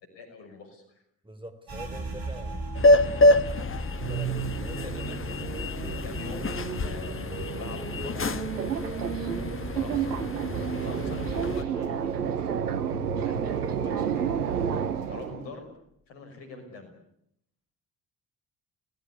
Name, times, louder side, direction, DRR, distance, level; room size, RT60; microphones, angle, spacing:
voice 1, 0.1-0.8 4.8-5.5 5.8-6.5 6.8-8.1 9.1-10.2 10.4-12.2 13.2-14.7 15.0-15.7 16.1-17.0, left 3 dB, 70° left, 5 dB, 6.0 m, -44 dB
voice 2, 1.2-5.0, right 1 dB, 10° right, 8 dB, 4.0 m, -45 dB
sound 1, 1.7-11.1 11.4-12.6 12.9-13.4 13.9-14.4, right 1 dB, 50° right, 7.5 m, -40 dB
sound 2, 2.7-11.6, left 2 dB, 30° left, 1.4 m, -27 dB
sound 3, 4.0-15.5, right 8 dB, 85° right, 0.9 m, -31 dB
25.5 x 19.0 x 8.3 m, 0.73 s
figure-of-eight pair, 45°, 45 cm